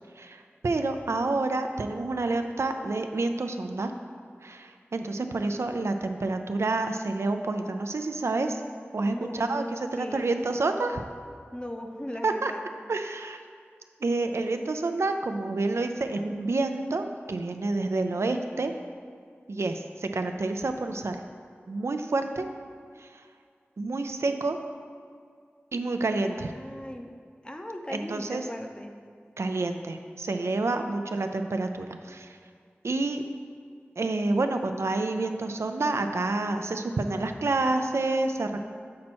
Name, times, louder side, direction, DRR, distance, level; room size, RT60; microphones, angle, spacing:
voice 1, 0.2-3.9 4.4-8.6 8.9-11.0 12.2-12.5 12.9-13.4 14.0-18.7 19.5-21.2 21.7-22.4 23.0-23.1 23.8-24.6 25.7-26.5 27.9-28.5 29.4-32.4 32.8-33.2 34.0-38.6, right 2 dB, 90° right, 6 dB, 0.4 m, -28 dB
voice 2, 9.0-10.3 11.5-12.6 26.1-27.1 27.4-29.0, left 1 dB, 20° left, 4 dB, 0.6 m, -38 dB
7.4 x 4.2 x 4.4 m, 2.2 s
wide cardioid pair, 45°, 5 cm